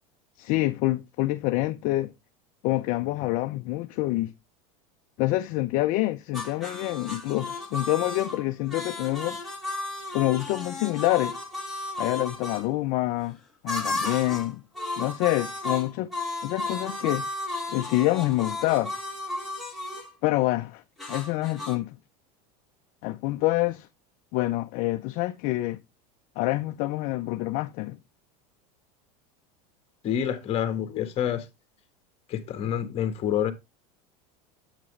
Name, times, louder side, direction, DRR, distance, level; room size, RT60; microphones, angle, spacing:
voice 1, 0.4-2.1 2.6-4.3 5.2-9.4 10.1-11.4 12.0-13.4 13.6-14.6 15.0-16.1 16.4-17.3 17.7-18.9 20.2-20.8 21.1-21.9 23.0-23.9 24.3-25.8 26.4-28.0, left 18 dB, 50° left, 0.6 m, -26 dB
sound 1, 6.3-12.6 13.7-14.5 14.8-20.1 21.0-21.8, left 2 dB, ahead, 2.0 m, -34 dB
voice 2, 30.0-31.4 32.3-33.5, left 9 dB, 35° left, 1.4 m, -27 dB
8.1 x 6.1 x 3.2 m
supercardioid pair, 145°, 18 cm